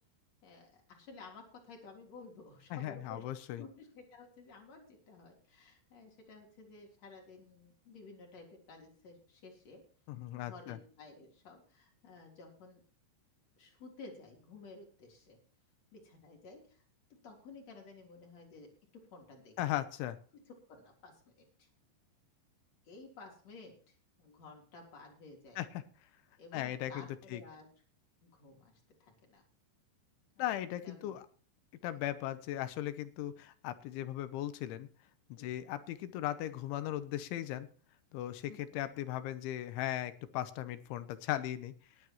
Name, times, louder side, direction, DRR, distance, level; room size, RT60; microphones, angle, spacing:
voice 1, 0.4-3.2 3.6-9.8 10.3-12.8 13.6-15.4 15.9-16.8 17.1-19.8 20.7-21.7 22.8-25.6 26.4-27.7 28.2-28.7 29.0-29.4 30.4-30.5 30.8-31.2 35.4-35.5 38.5-38.8, left 3 dB, 35° left, 1 dB, 4.2 m, -54 dB
voice 2, 2.7-3.6 10.1-10.8 19.6-20.2 25.6-25.8 26.5-27.4 30.4-31.3 31.8-34.9 35.3-37.7 38.1-41.7, left 13 dB, 80° left, 12 dB, 3.2 m, -38 dB
19.0 x 11.0 x 3.1 m, 0.41 s
omnidirectional pair, 5.7 m